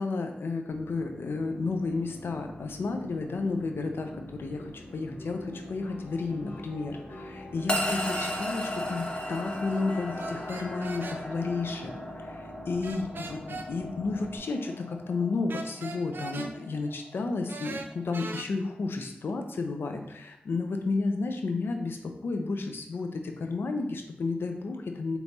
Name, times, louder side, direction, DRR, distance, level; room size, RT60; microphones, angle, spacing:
voice 1, 0.0-8.1 8.4-25.2, left 3 dB, 85° left, 5 dB, 0.5 m, -32 dB
sound 1, 0.7-14.4, left 1 dB, 60° left, 0.8 m, -45 dB
sound 2, 7.7-18.0, equal, 25° left, 0.8 m, -36 dB
sound 3, 8.1-8.3 10.2-11.2 12.8-13.7 15.5-16.5 17.5-18.5, right 3 dB, 70° right, 0.4 m, -39 dB
5.2 x 3.0 x 2.6 m, 0.76 s
cardioid pair, 55°, 4 cm